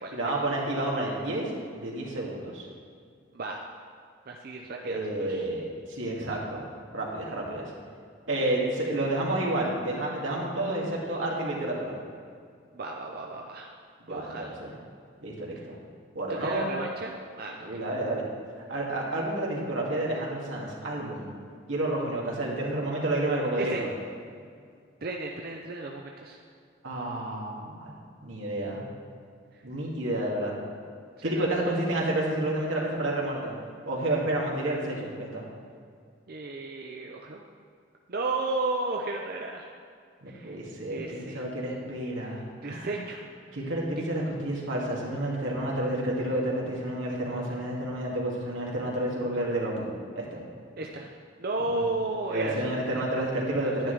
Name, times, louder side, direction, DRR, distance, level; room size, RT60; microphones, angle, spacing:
voice 1, 0.1-2.7 4.8-6.7 6.9-7.6 8.3-12.0 14.1-14.7 15.2-15.8 16.1-16.7 17.6-18.2 18.7-21.3 21.7-23.9 26.8-27.9 28.2-28.8 29.6-30.5 31.2-33.5 33.9-35.4 40.2-43.0 43.5-49.8 50.1-50.4 51.7-51.9 52.3-53.9, right 1 dB, 90° right, -3 dB, 2.2 m, -30 dB
voice 2, 4.3-5.5 12.7-13.7 14.1-14.6 15.6-15.7 16.4-17.8 23.6-23.9 25.0-26.4 29.5-29.6 31.2-31.8 36.3-37.4 38.1-39.7 40.3-40.6 40.9-41.4 42.6-43.3 50.8-51.1 51.4-53.0 53.6-53.9, right 2 dB, 50° right, 0 dB, 0.6 m, -34 dB
10.5 x 10.5 x 3.3 m, 2.2 s
head